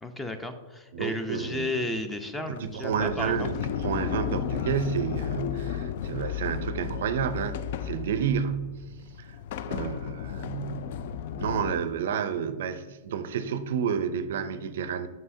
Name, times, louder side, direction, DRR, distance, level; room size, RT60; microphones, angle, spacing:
voice 1, 0.0-3.5, left 2 dB, 10° left, 8 dB, 0.6 m, -33 dB
voice 2, 0.9-1.8 2.5-8.8 9.2-9.3 9.7-11.0 11.4-15.1, right 7 dB, 70° right, 12 dB, 0.4 m, -30 dB
Sliding door, 2.5-11.8, left 9 dB, 60° left, 0.3 m, -34 dB
7.5 x 5.4 x 2.6 m, 1.4 s
hypercardioid pair, 110°, 0 cm